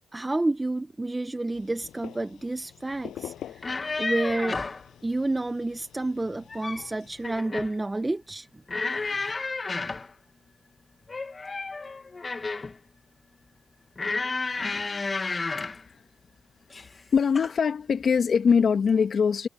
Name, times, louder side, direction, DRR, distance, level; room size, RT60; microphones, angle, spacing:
voice 1, 0.1-4.6 5.0-8.5, right 2 dB, 15° right, 1.1 m, -30 dB
sound 1, 1.5-7.4, left 11 dB, 75° left, 7.9 m, -46 dB
sound 2, 3.5-4.8 6.3-6.9 7.2-7.8 8.7-10.1 11.1-12.8 14.0-15.8 16.7-17.0 17.3-17.6, left 3 dB, 25° left, 1.6 m, -31 dB
voice 2, 17.1-19.5, left 6 dB, 50° left, 2.4 m, -22 dB
cardioid pair, 90°, 0 cm